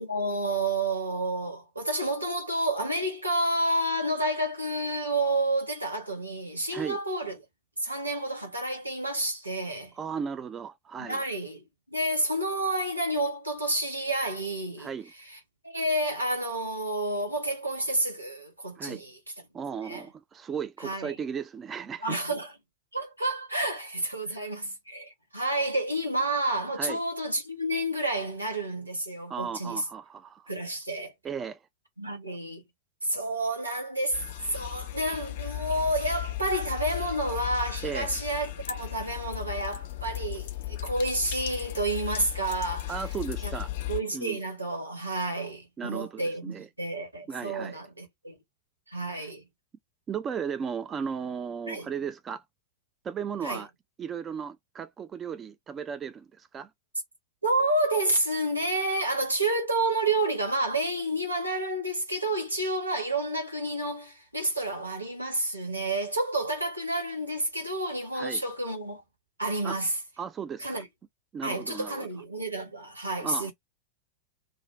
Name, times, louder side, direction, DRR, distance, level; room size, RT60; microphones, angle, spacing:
voice 1, 0.0-7.4 7.8-9.9 11.0-14.9 15.3-15.4 15.6-19.2 19.8-20.0 20.8-21.1 22.0-22.5 22.9-29.8 30.5-31.1 32.0-32.6 33.0-34.2 34.5-42.9 43.4-43.5 43.9-48.4 48.9-49.4 51.7-51.9 53.4-53.6 57.4-69.0 69.4-69.9 70.6-70.9 71.4-73.5, right 1 dB, 85° right, 1.1 m, -30 dB
voice 2, 9.9-11.2 14.8-15.1 18.8-19.0 19.5-22.2 24.3-24.4 26.8-27.0 29.3-30.5 31.2-31.6 37.8-38.2 42.9-43.7 44.1-44.4 45.8-46.7 47.3-47.8 49.1-49.2 50.1-52.4 53.0-53.7 54.0-56.7 68.1-68.4 69.6-69.8 70.2-70.8 71.3-72.1 73.2-73.5, right 7 dB, 25° right, 0.3 m, -35 dB
sound 1, 34.1-44.0, left 15 dB, 55° left, 0.4 m, -36 dB
2.5 x 2.2 x 3.1 m
figure-of-eight pair, 90°, 0 cm